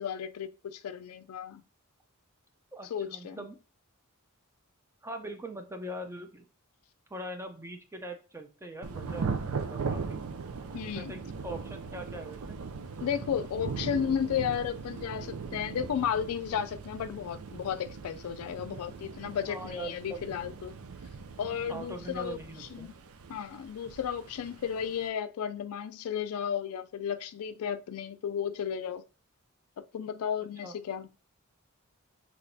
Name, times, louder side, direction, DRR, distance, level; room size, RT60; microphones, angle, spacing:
voice 1, 0.0-1.6 2.9-3.4 10.7-11.1 13.0-20.7 21.4-22.4 22.7-22.9 23.3-29.0 29.8-31.1, left 8 dB, 70° left, 0.3 m, -33 dB
voice 2, 2.7-3.6 5.0-6.5 7.1-10.2 10.9-12.6 19.5-20.2 21.7-22.9 30.6-30.7, right 1 dB, 10° right, 0.6 m, -41 dB
Thunder / Rain, 8.8-25.1, right 5 dB, 70° right, 0.5 m, -39 dB
6.2 x 3.0 x 2.7 m
head